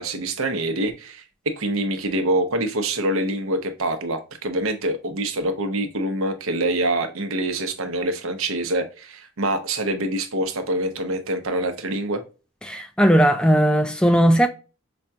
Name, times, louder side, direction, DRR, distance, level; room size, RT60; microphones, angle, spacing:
voice 1, 0.0-12.2, right 1 dB, 85° right, 0.8 m, -25 dB
voice 2, 12.7-14.5, equal, 5° left, 0.3 m, -17 dB
5.0 x 2.3 x 2.6 m
head